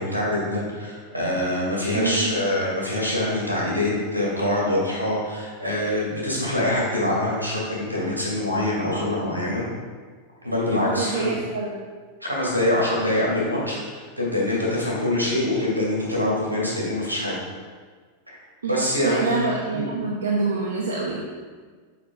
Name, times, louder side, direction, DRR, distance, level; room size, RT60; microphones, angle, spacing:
voice 1, 0.0-9.6 10.4-11.3 12.2-17.3 18.3-18.4 18.7-19.9, left 1 dB, 90° right, -4 dB, 2.0 m, -24 dB
voice 2, 1.9-2.3 10.9-11.7 18.6-18.7 19.0-21.2, right 4 dB, 70° right, -3 dB, 0.8 m, -26 dB
5.8 x 5.5 x 3.7 m, 1.5 s
figure-of-eight pair, 90°, 0 cm